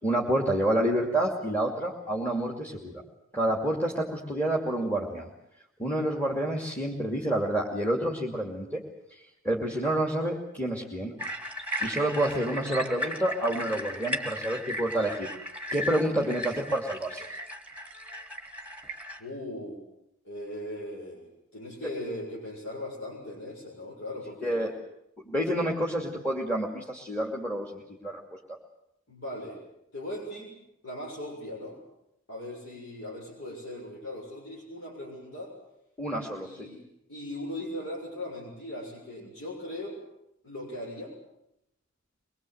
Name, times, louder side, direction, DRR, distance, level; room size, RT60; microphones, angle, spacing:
voice 1, 0.0-3.0 3.3-5.3 5.8-8.8 9.4-11.1 11.8-15.3 15.7-17.3 24.4-24.7 25.3-28.2 36.0-36.7, right 1 dB, 10° left, 0 dB, 2.6 m, -28 dB
sound 1, 11.2-19.2, equal, 5° right, 2.4 m, -36 dB
voice 2, 19.2-19.8 20.2-24.6 29.1-29.6 29.9-30.6 30.8-31.8 32.3-35.5 36.4-36.8 37.1-40.0 40.4-41.2, left 1 dB, 75° left, -4 dB, 7.0 m, -39 dB
24.0 x 22.0 x 8.0 m, 0.81 s
head